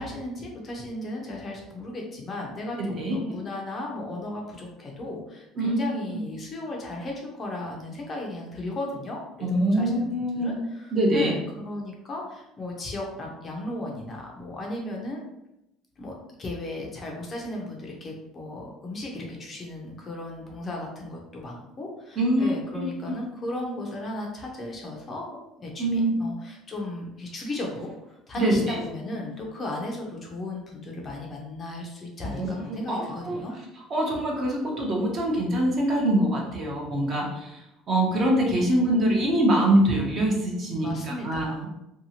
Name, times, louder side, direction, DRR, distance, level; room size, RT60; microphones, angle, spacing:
voice 1, 0.0-10.1 10.3-15.2 16.0-27.9 28.3-33.5 40.8-41.7, left 1 dB, 25° left, -1 dB, 0.5 m, -35 dB
voice 2, 2.8-3.2 5.6-5.8 6.1-6.2 9.4-10.6 10.9-11.3 22.2-22.9 25.8-26.1 28.4-28.8 32.3-33.4 33.9-41.7, right 1 dB, 35° right, -2 dB, 0.7 m, -24 dB
2.7 x 2.3 x 2.8 m, 0.88 s
cardioid pair, 150°, 0 cm